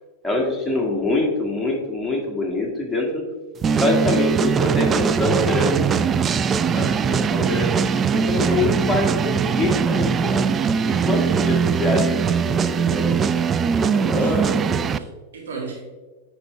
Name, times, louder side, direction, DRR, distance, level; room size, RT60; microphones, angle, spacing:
voice 1, 0.2-3.2 3.8-5.9 6.7-7.7 8.1-10.4 10.9-13.3 13.8-14.8, left 2 dB, ahead, -2 dB, 2.0 m, -25 dB
sound 1, 3.6-15.0, right 6 dB, 25° right, 0.3 m, -21 dB
voice 2, 13.9-14.4 14.9-15.8, right 4 dB, 70° right, -2 dB, 2.3 m, -35 dB
9.3 x 4.5 x 3.3 m, 1.3 s
hypercardioid pair, 95°, 0 cm